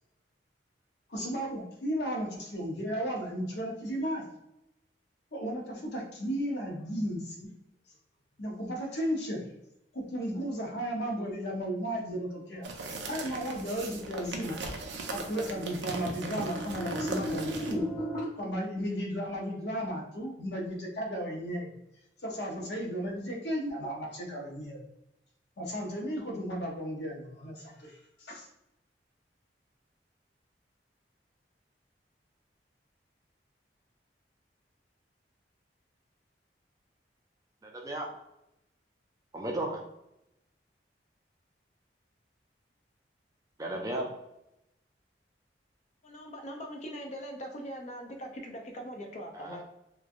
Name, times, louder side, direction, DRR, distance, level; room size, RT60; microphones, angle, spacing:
voice 1, 1.1-4.3 5.3-7.5 8.4-9.5 9.9-12.7 13.0-14.6 15.1-17.9 18.3-21.7 22.2-24.8 25.6-28.5, equal, 70° left, -1 dB, 0.8 m, -34 dB
sound 1, 12.6-17.7, right 3 dB, 90° right, 0.5 m, -39 dB
sound 2, 13.6-18.2, right 1 dB, 20° left, 1.5 m, -38 dB
voice 2, 37.6-38.1 39.3-39.8 43.6-44.1 49.3-49.6, right 1 dB, 20° right, 1 dB, 0.4 m, -34 dB
voice 3, 46.0-49.6, equal, 40° left, 2 dB, 0.5 m, -41 dB
3.1 x 2.2 x 2.4 m, 0.85 s
head